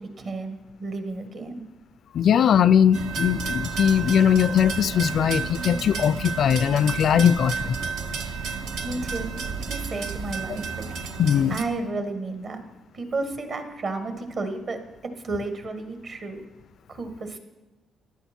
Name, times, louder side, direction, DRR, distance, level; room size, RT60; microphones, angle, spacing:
voice 1, 0.0-1.6 8.2-9.3 9.6-10.8 11.5-12.6 12.9-14.8 15.2-16.4 16.9-17.4, right 3 dB, 55° right, 1.8 m, -32 dB
voice 2, 2.1-7.8 11.2-11.6, left 8 dB, 60° left, 0.3 m, -20 dB
sound 1, 2.9-11.6, right 5 dB, 80° right, 0.9 m, -32 dB
15.5 x 10.5 x 4.5 m
cardioid pair, 90°, 0 cm